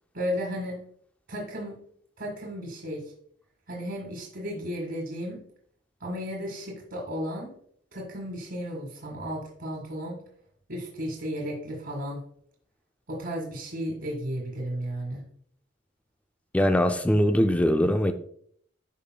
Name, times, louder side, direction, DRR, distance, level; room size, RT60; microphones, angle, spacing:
voice 1, 0.1-0.8 1.3-1.8 2.2-3.1 3.7-5.4 6.0-7.5 7.9-10.2 10.7-12.2 13.1-15.2, equal, 60° right, 1.8 m, -34 dB
voice 2, 16.5-18.1, equal, 5° left, 0.4 m, -22 dB
12.0 x 5.1 x 2.3 m
head